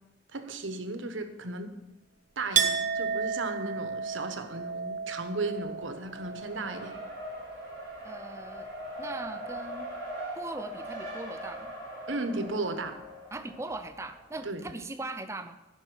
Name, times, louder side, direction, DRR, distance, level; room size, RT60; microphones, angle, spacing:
voice 1, 0.3-1.7 2.4-7.0 12.1-13.0 14.4-14.8, right 2 dB, 85° right, 8 dB, 1.1 m, -35 dB
Chink clink, 2.5-8.1 8.4-9.2, right 6 dB, 45° right, 0.9 m, -33 dB
Race car auto racing, 5.4-14.4, equal, 10° left, 4.9 m, -41 dB
voice 2, 8.0-8.7 9.0-9.9 10.4-11.7 13.3-15.6, right 2 dB, 15° right, 9 dB, 0.4 m, -40 dB
10.5 x 5.9 x 7.9 m, 1.0 s
head